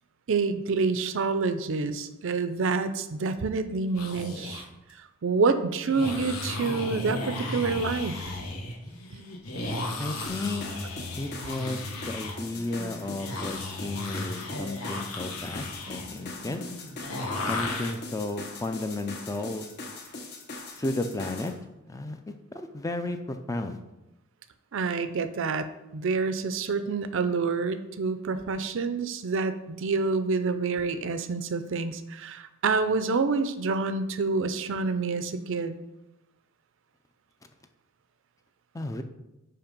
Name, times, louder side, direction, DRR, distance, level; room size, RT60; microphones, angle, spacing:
voice 1, 0.3-4.6 5.2-8.2 24.7-35.7, right 4 dB, 65° right, 11 dB, 0.5 m, -27 dB
sound 1, 3.9-4.7 5.8-17.9, left 2 dB, 80° left, 1.2 m, -35 dB
voice 2, 10.0-10.6 11.2-16.6 17.4-19.7 20.8-21.5 21.9-22.2 22.5-23.8 38.7-39.0, left 2 dB, 15° left, 7 dB, 0.4 m, -33 dB
sound 2, 10.3-21.6, left 3 dB, 50° left, 0.9 m, -41 dB
5.7 x 4.7 x 5.2 m, 0.96 s
head